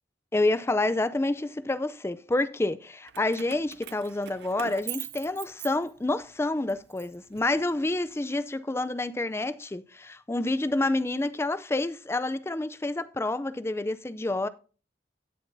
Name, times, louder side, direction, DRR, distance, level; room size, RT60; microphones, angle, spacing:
voice 1, 0.3-14.5, left 2 dB, 15° left, 0.4 m, -28 dB
Keys jangling, 3.1-6.2 6.7-8.0, right 12 dB, 65° right, 0.4 m, -42 dB
17.0 x 6.8 x 2.6 m
head